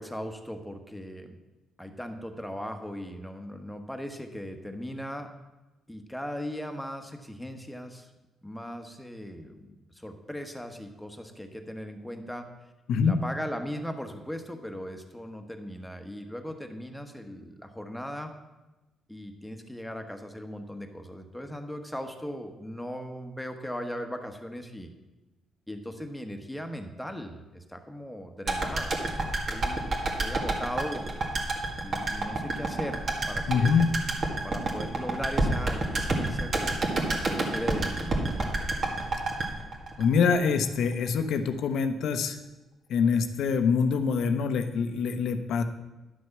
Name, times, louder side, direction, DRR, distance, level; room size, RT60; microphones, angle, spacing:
voice 1, 0.0-1.4 1.8-5.3 5.9-8.1 8.4-12.5 13.0-18.3 19.1-24.9 25.7-31.1 31.8-33.8 34.4-38.5, equal, 5° left, 5 dB, 1.3 m, -38 dB
sound 1, 28.5-40.6 40.9-41.0, right 2 dB, 45° right, 1.9 m, -29 dB
voice 2, 33.5-33.9 40.0-42.4 42.9-45.6, left 6 dB, 75° left, 8 dB, 0.9 m, -25 dB
11.0 x 6.3 x 6.0 m, 1.1 s
cardioid pair, 90°, 0 cm